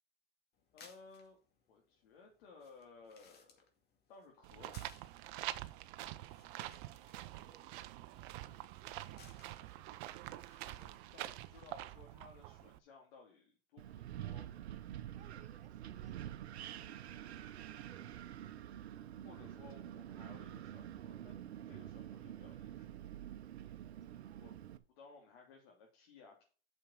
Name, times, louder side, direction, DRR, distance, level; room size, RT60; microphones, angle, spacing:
sound 1, 0.5-11.3, left 5 dB, 30° left, 2.4 m, -66 dB
voice 1, 0.7-1.4 1.7-3.6 4.1-5.0 10.6-14.5 19.2-23.1 24.4-24.6 25.0-26.4, left 4 dB, 60° left, 3.3 m, -59 dB
sound 2, 4.4-12.8, right 15 dB, 50° right, 0.8 m, -46 dB
voice 2, 6.2-10.6 15.1-16.2 17.6-17.9 24.0-24.4, right 7 dB, 20° right, 3.1 m, -66 dB
Wind, 13.8-24.8, right 11 dB, 70° right, 1.0 m, -47 dB
8.8 x 6.3 x 5.8 m
hypercardioid pair, 110°, 33 cm